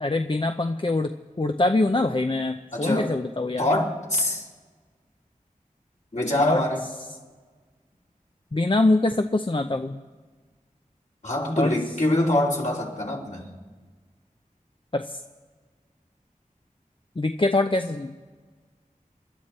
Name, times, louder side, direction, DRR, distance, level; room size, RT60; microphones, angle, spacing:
voice 1, 0.0-3.7 6.4-6.6 8.5-10.0 11.6-11.7 14.9-15.2 17.2-18.2, left 2 dB, 35° left, 6 dB, 0.6 m, -24 dB
voice 2, 2.7-3.1 3.6-4.4 6.1-6.8 11.2-13.5, left 1 dB, 55° left, -3 dB, 3.1 m, -24 dB
28.5 x 11.5 x 4.4 m, 1.4 s
wide cardioid pair, 45°, 14 cm